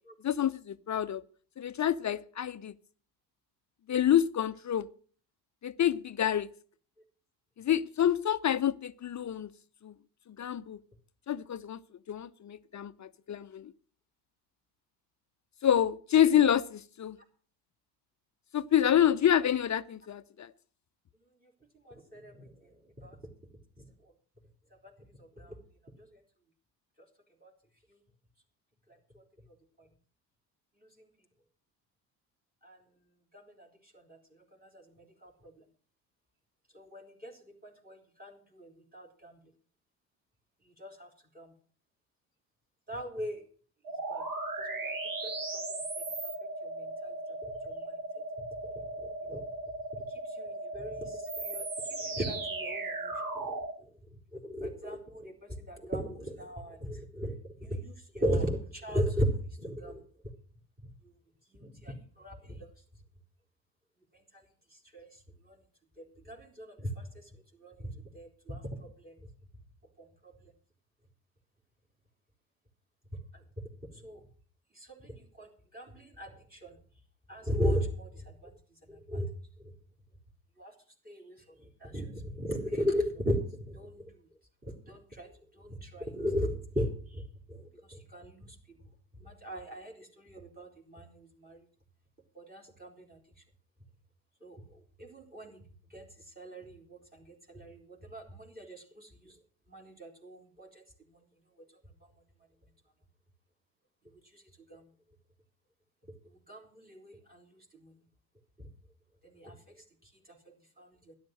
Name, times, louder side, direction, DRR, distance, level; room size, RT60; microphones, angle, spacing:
voice 1, 0.2-1.2 1.6-2.7 3.9-4.9 5.6-6.5 7.6-9.5 9.8-9.9 10.4-10.8 11.3-11.8 12.1-13.7 15.6-17.2 18.5-20.5, left 10 dB, 35° left, 0.7 m, -27 dB
voice 2, 21.8-22.5 23.0-23.2 25.2-25.6 27.4-27.5 32.6-32.8 33.3-33.7 34.6-35.5 36.7-39.4 40.8-41.1 41.3-41.5 42.9-43.4 44.1-44.3 44.6-45.6 46.6-47.1 47.4-48.0 48.6-48.7 49.0-49.4 50.4-53.6 54.3-57.4 57.6-60.0 61.5-62.7 64.9-65.1 65.5-65.6 66.0-67.2 67.6-69.1 70.0-70.1 73.9-74.2 74.8-76.7 77.3-78.5 78.9-79.3 80.6-80.7 81.1-81.4 81.6-84.0 84.6-87.2 87.5-87.6 87.9-88.6 89.2-91.6 92.4-93.2 94.4-94.6 95.0-95.6 95.9-96.1 96.4-99.3 99.7-100.8 104.3-104.4 104.7-104.8 106.5-107.4 107.8-107.9 109.2-109.6 110.3-111.1, equal, 20° right, 3.8 m, -37 dB
sound 1, 43.8-53.8, right 2 dB, 40° right, 2.6 m, -37 dB
12.0 x 11.0 x 6.4 m
hypercardioid pair, 55°, 49 cm